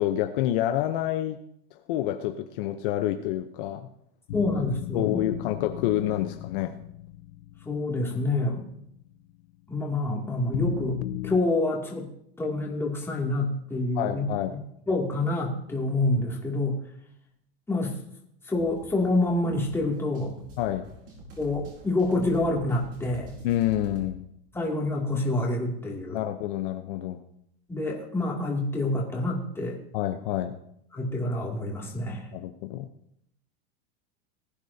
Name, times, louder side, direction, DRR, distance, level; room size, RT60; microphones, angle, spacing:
voice 1, 0.0-1.4 1.9-3.9 4.9-6.7 14.0-14.5 20.6-20.9 23.4-24.3 26.1-27.2 29.9-30.6 32.3-32.9, left 13 dB, 55° left, 7 dB, 0.9 m, -28 dB
sound 1, 4.3-9.4 10.5-11.4, left 16 dB, 85° left, 0.7 m, -36 dB
voice 2, 4.3-5.2 7.6-8.6 9.7-11.0 11.2-12.1 12.4-14.2 14.9-16.8 17.7-18.0 18.5-20.3 21.4-23.4 24.5-26.2 27.7-29.8 30.9-32.3, left 2 dB, 5° left, -2 dB, 2.5 m, -27 dB
sound 2, 18.5-24.1, equal, 35° right, 5.2 m, -46 dB
20.0 x 9.9 x 2.8 m, 0.73 s
supercardioid pair, 145°, 32 cm